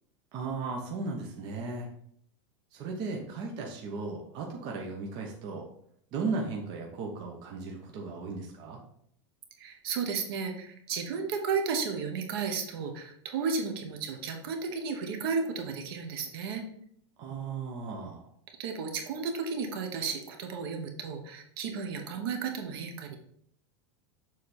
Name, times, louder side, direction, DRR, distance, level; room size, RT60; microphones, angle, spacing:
voice 1, 0.3-1.9 2.7-5.7 6.1-8.8 17.2-18.3, right 4 dB, 30° right, -1 dB, 0.9 m, -36 dB
voice 2, 9.6-16.6 18.5-23.2, right 5 dB, 55° right, 4 dB, 1.3 m, -33 dB
6.8 x 4.1 x 4.2 m, 0.66 s
supercardioid pair, 170°, 15 cm